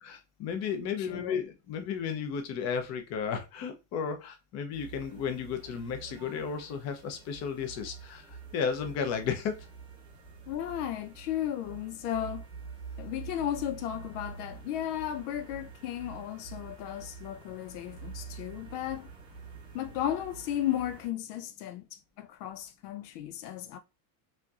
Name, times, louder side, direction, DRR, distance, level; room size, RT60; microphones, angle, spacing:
voice 1, 0.0-9.6, left 6 dB, 35° left, 0.7 m, -34 dB
voice 2, 1.0-1.4 10.5-12.5 13.0-19.1 19.7-23.8, left 11 dB, 75° left, 0.6 m, -35 dB
sound 1, 4.7-21.1, right 5 dB, 10° right, 0.8 m, -47 dB
4.3 x 2.7 x 2.4 m
supercardioid pair, 150°, 48 cm